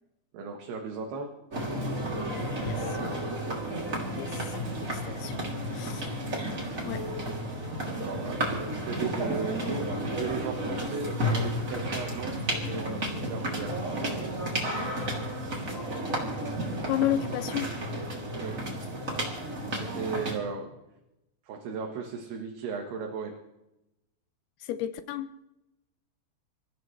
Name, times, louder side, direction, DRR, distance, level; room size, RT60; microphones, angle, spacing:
voice 1, 0.3-1.3 7.8-12.4 12.7-13.8 18.4-18.6 19.7-20.7 21.4-23.3, right 5 dB, 80° right, 3.4 m, -36 dB
sound 1, 1.5-20.4, equal, 20° right, 2.7 m, -32 dB
voice 2, 2.6-3.0 4.1-5.4 5.7-6.1 6.8-7.1 16.9-17.7 24.6-25.3, left 12 dB, 80° left, 2.6 m, -32 dB
27.5 x 15.0 x 3.2 m
omnidirectional pair, 4.6 m